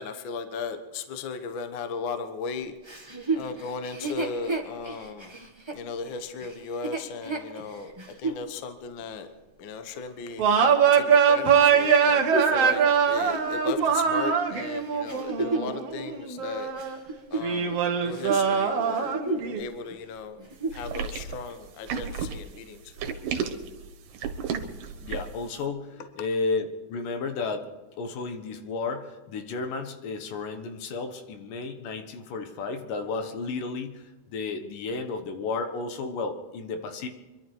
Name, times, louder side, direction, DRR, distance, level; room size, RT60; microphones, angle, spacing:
voice 1, 0.0-2.7 3.3-5.4 5.7-9.3 9.6-10.4 10.9-16.7 17.3-19.2 19.5-20.4 20.7-22.9 23.3-23.5, left 5 dB, 55° left, 8 dB, 1.3 m, -36 dB
Chuckle chortle, 2.8-8.4 9.0-9.1 11.8-15.8 16.4-17.9 18.1-18.4 18.9-19.6 19.9-20.0 20.4-20.9 21.5-21.6, right 3 dB, 15° right, 0.9 m, -32 dB
sound 1, 10.4-17.0 17.4-19.6, right 7 dB, 55° right, 2.3 m, -23 dB
sound 2, 20.7-25.4, right 6 dB, 80° right, 2.9 m, -33 dB
voice 2, 25.0-27.7 28.0-37.1, left 4 dB, 85° left, 6 dB, 3.0 m, -33 dB
25.5 x 12.0 x 4.6 m, 1.2 s
omnidirectional pair, 3.8 m